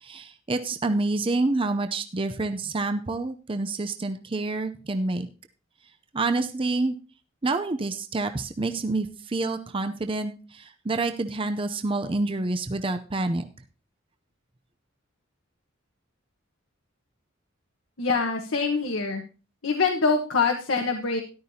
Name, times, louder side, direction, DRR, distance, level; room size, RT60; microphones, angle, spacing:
voice 1, 0.0-5.3 6.1-7.0 7.4-13.4, right 2 dB, 25° right, 8 dB, 0.5 m, -28 dB
voice 2, 18.0-19.2 19.6-21.2, left 4 dB, 75° left, 3 dB, 1.2 m, -24 dB
13.5 x 11.5 x 2.8 m, 0.34 s
head